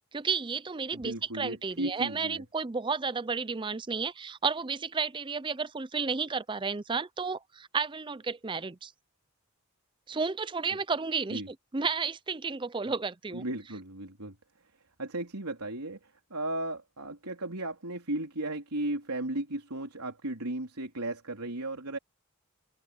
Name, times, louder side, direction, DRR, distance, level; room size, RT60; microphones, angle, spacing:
voice 1, 0.1-8.9 10.1-11.4 11.7-13.4, right 5 dB, 20° right, 0.5 m, -32 dB
voice 2, 0.9-2.4 11.3-11.5 13.3-14.4 15.0-22.0, right 1 dB, 90° right, 3.9 m, -35 dB
head